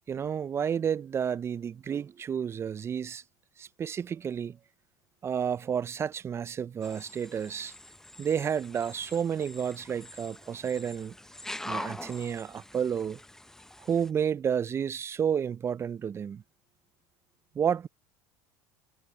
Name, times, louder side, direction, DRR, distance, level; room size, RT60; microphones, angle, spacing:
voice 1, 0.1-3.2 3.6-4.6 5.2-7.7 8.2-11.1 11.6-13.2 13.8-16.4 17.5-17.9, right 8 dB, 30° right, 0.4 m, -31 dB
sound 1, 6.8-14.1, left 1 dB, 5° left, 0.7 m, -44 dB
supercardioid pair, 100°, 9 cm